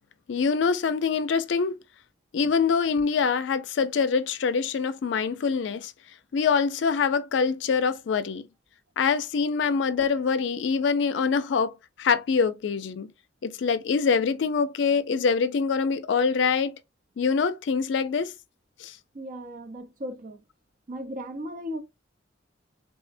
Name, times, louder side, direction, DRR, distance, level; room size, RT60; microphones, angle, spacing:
voice 1, 0.3-1.7 2.3-5.9 6.3-8.5 9.0-11.7 12.0-13.1 13.4-16.7 17.2-18.3 18.8-18.9, left 5 dB, 70° left, 0.4 m, -24 dB
voice 2, 19.1-20.4 20.9-21.8, equal, 45° right, 0.6 m, -36 dB
3.6 x 2.0 x 2.5 m
head